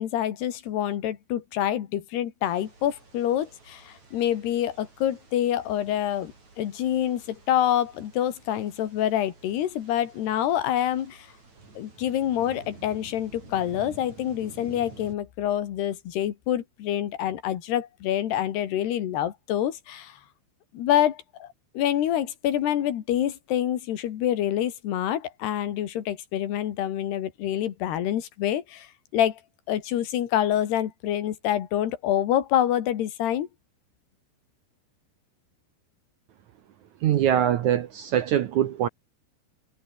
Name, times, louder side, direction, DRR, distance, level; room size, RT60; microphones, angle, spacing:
voice 1, 0.0-11.3 11.8-20.2 20.7-21.5 21.8-29.4 29.7-33.5, left 11 dB, 85° left, 4.0 m, -26 dB
sound 1, 2.5-15.1, right 3 dB, 45° right, 8.4 m, -50 dB
voice 2, 37.0-38.9, right 10 dB, 70° right, 2.0 m, -23 dB
omnidirectional pair, 4.6 m